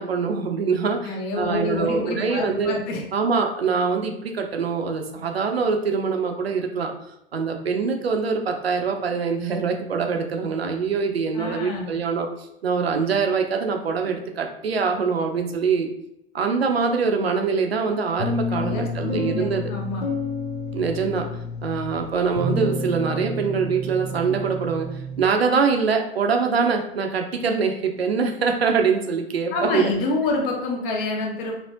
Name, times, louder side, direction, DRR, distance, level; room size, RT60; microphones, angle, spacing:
voice 1, 0.0-1.0 1.4-2.8 3.1-6.9 7.3-12.3 12.6-15.9 16.3-19.6 20.7-21.3 21.6-24.9 25.2-29.9, right 5 dB, 75° right, 3 dB, 0.6 m, -24 dB
voice 2, 1.0-3.0 11.3-11.9 18.5-20.0 29.5-31.5, left 2 dB, 35° left, 0 dB, 0.9 m, -27 dB
sound 1, 18.2-25.3, left 2 dB, 80° left, 0.7 m, -29 dB
4.3 x 2.0 x 2.6 m, 0.82 s
figure-of-eight pair, 95°, 31 cm